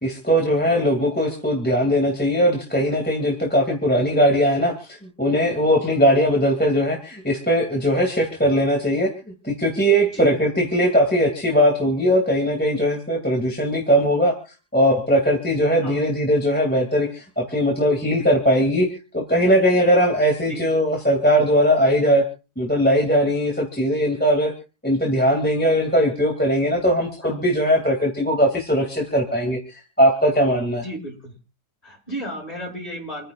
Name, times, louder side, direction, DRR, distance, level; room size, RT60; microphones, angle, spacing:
voice 1, 0.0-9.1 9.4-14.4 14.7-18.9 19.1-22.2 22.6-24.5 24.8-29.6 30.0-30.8, equal, 5° left, 1 dB, 2.7 m, -19 dB
voice 2, 30.8-31.3 31.8-33.3, right 1 dB, 35° left, -3 dB, 8.0 m, -33 dB
28.5 x 9.9 x 2.5 m, 0.35 s
omnidirectional pair, 1.7 m